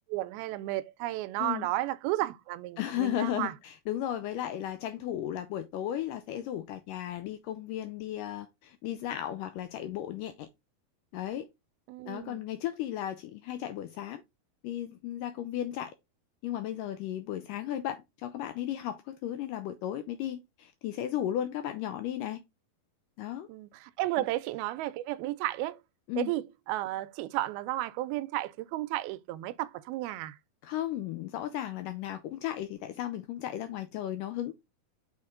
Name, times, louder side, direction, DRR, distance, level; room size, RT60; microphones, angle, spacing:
voice 1, 0.1-3.5 11.9-12.4 23.5-25.8 26.2-30.4, right 16 dB, 90° right, 2.5 m, -33 dB
voice 2, 2.8-10.5 11.1-11.5 12.1-14.2 14.6-15.9 16.4-22.4 23.2-23.5 26.1-26.3 30.6-34.5, left 11 dB, 80° left, 1.9 m, -35 dB
6.6 x 4.1 x 3.7 m
omnidirectional pair, 4.3 m